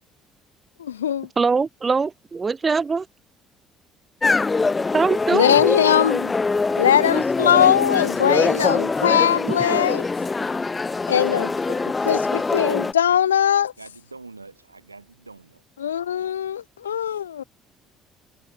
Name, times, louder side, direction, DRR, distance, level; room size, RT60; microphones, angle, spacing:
voice 1, 0.8-1.3 5.3-6.3 6.8-10.1 11.1-11.5 12.1-13.7 15.8-17.4, left 9 dB, 80° left, 0.5 m, -20 dB
voice 2, 1.4-3.0 4.9-5.6, right 4 dB, 30° right, 2.9 m, -22 dB
sound 1, 4.2-12.9, left 3 dB, 25° left, 2.5 m, -23 dB
voice 3, 10.9-12.3 13.8-15.6, right 3 dB, 90° right, 6.0 m, -46 dB
figure-of-eight pair, 50°, 0 cm